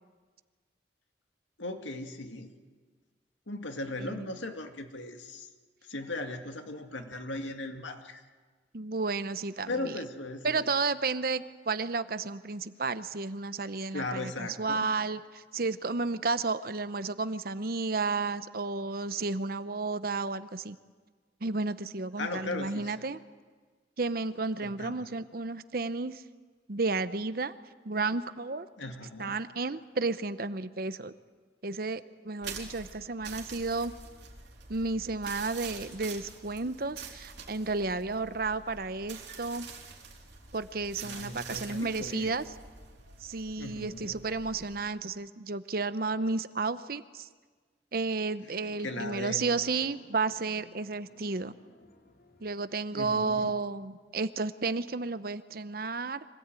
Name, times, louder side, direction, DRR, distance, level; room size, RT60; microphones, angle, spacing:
voice 1, 1.6-2.5 3.5-5.5 5.9-8.2 9.7-10.7 13.9-14.9 22.2-22.9 24.6-25.1 28.8-29.4 41.0-42.4 43.6-44.2 48.8-49.5 52.9-53.5, left 2 dB, 90° left, 5 dB, 2.1 m, -38 dB
voice 2, 4.0-4.3 8.7-10.0 10.4-20.8 21.4-23.2 24.0-26.2 26.7-27.5 27.8-28.7 29.2-31.1 31.6-33.9 34.7-39.7 40.5-42.4 43.2-47.3 47.9-51.5 52.4-56.2, right 3 dB, 50° right, 13 dB, 0.8 m, -32 dB
sound 1, 32.4-44.9, right 5 dB, 70° right, 3.7 m, -46 dB
sound 2, 48.5-54.1, left 1 dB, 55° left, 2.5 m, -58 dB
25.0 x 16.5 x 9.0 m, 1.5 s
head